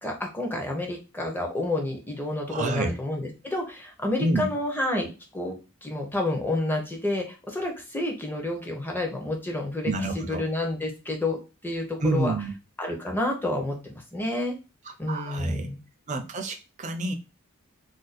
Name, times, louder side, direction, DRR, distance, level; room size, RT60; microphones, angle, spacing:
voice 1, 0.0-11.4 11.6-12.3 12.8-14.5 15.0-15.8, left 1 dB, 10° left, 1 dB, 0.6 m, -29 dB
voice 2, 2.5-2.9 4.2-4.5 9.9-10.4 12.0-12.5 15.1-15.7 16.1-17.1, right 2 dB, 35° right, 6 dB, 0.4 m, -28 dB
2.5 x 2.2 x 4.0 m, 0.30 s
head